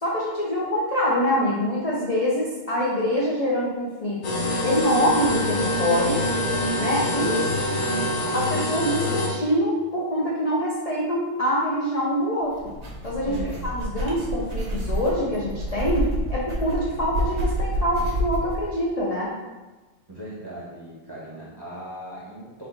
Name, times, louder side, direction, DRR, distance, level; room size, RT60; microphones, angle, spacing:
voice 1, 0.0-6.2 6.8-7.4 8.3-12.6 13.0-13.3 13.6-19.3, equal, 45° left, -6 dB, 0.5 m, -25 dB
sound 1, 4.2-9.3, left 1 dB, 75° left, 1.2 m, -25 dB
sound 2, 12.5-18.6, equal, 60° right, 1.1 m, -28 dB
voice 2, 13.3-13.6 20.1-22.7, right 1 dB, 20° right, -7 dB, 0.8 m, -38 dB
4.5 x 2.6 x 3.8 m, 1.2 s
omnidirectional pair, 1.4 m